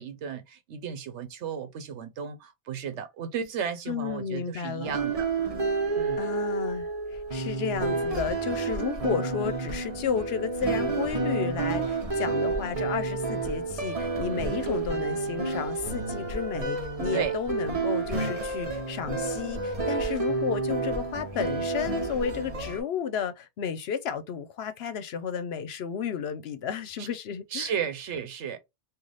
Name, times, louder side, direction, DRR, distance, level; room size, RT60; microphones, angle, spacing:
voice 1, 0.0-5.3 6.0-6.2 14.3-14.4 17.1-17.3 27.0-27.1 27.5-28.6, right 7 dB, 85° right, 1.0 m, -34 dB
voice 2, 3.9-4.9 6.2-27.7, left 7 dB, 70° left, 0.8 m, -32 dB
sound 1, 4.8-22.8, right 3 dB, 35° right, 0.9 m, -30 dB
3.2 x 2.4 x 3.8 m
omnidirectional pair, 1.2 m